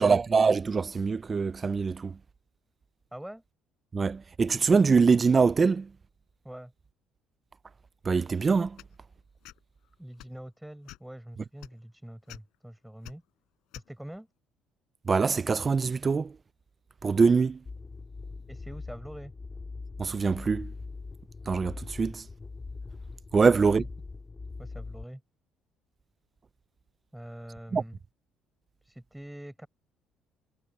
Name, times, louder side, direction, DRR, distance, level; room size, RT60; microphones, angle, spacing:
voice 1, 0.0-2.2 3.9-5.9 8.1-8.8 15.1-16.3 17.0-17.6 20.0-20.7 21.5-22.2 23.3-23.9 27.7-27.8, right 5 dB, 25° right, 0.4 m, -24 dB
voice 2, 3.1-3.4 6.4-6.7 10.0-13.2 13.7-14.3 18.5-19.3 23.4-23.8 24.6-25.2 27.1-28.0 28.8-29.7, right 1 dB, 5° right, 4.7 m, -44 dB
sound 1, 8.8-8.9 9.4-9.6 10.1-10.4 10.8-11.1 11.6-11.7 12.3-12.4 13.0-13.1 13.7-13.9, left 17 dB, 80° left, 6.4 m, -46 dB
sound 2, 17.7-25.0, left 3 dB, 20° left, 3.4 m, -42 dB
cardioid pair, 155°, 0 cm